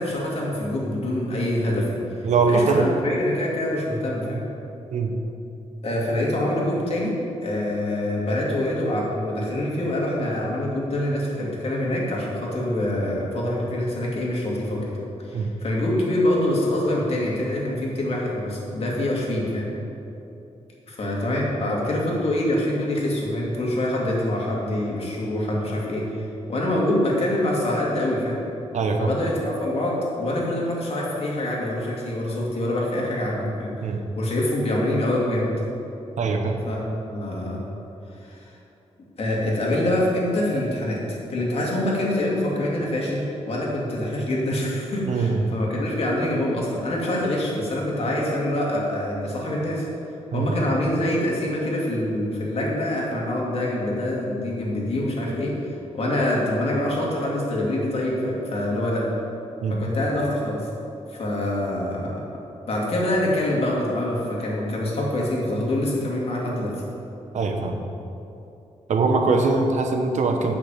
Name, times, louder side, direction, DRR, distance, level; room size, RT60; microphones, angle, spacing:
voice 1, 0.0-2.0 2.5-4.4 5.8-7.1 7.4-14.8 15.2-19.7 20.9-28.4 29.0-33.7 34.2-35.5 36.7-36.8 37.1-37.6 38.2-38.5 39.2-49.8 50.3-55.6 55.9-59.0 59.7-60.7 61.1-62.1 62.7-66.7, left 1 dB, 55° left, -4 dB, 2.4 m, -25 dB
voice 2, 2.2-2.9 4.9-5.2 15.3-15.5 28.7-29.1 33.8-34.0 36.2-36.6 40.5-40.6 45.1-45.5 50.3-50.5 59.6-59.9 67.3-67.8 68.9-70.5, right 4 dB, 80° right, 4 dB, 1.0 m, -22 dB
8.3 x 6.0 x 7.4 m, 2.9 s
wide cardioid pair, 120°, 12 cm